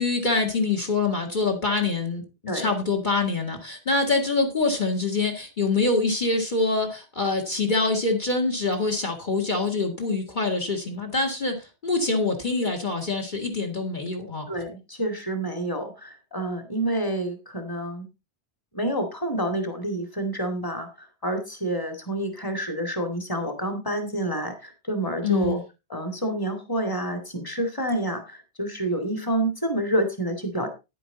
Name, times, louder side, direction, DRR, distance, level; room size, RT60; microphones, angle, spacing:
voice 1, 0.0-14.5 25.2-25.6, left 3 dB, 45° left, 5 dB, 2.1 m, -25 dB
voice 2, 14.5-18.1 18.7-25.6 25.9-30.7, right 1 dB, 20° left, 6 dB, 2.3 m, -28 dB
10.0 x 10.0 x 3.9 m, 0.27 s
omnidirectional pair, 1.1 m